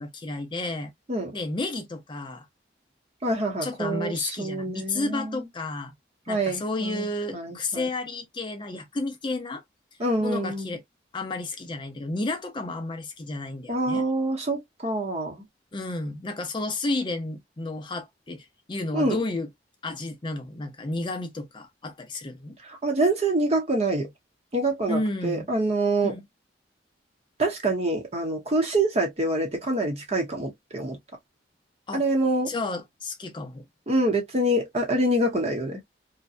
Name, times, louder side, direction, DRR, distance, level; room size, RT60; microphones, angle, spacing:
voice 1, 0.0-0.9 1.3-2.5 3.6-5.9 6.3-9.6 10.2-10.8 11.1-14.0 15.7-19.5 19.8-22.6 24.9-25.5 26.0-26.2 31.9-32.0 32.5-33.6, left 2 dB, 25° left, 0.5 m, -32 dB
voice 2, 3.2-5.5 6.3-7.9 10.0-10.8 13.7-15.4 18.9-19.2 22.6-24.1 24.5-26.1 27.4-31.0 31.9-32.5 33.9-35.8, right 1 dB, 35° right, 0.7 m, -26 dB
2.7 x 2.1 x 2.3 m
head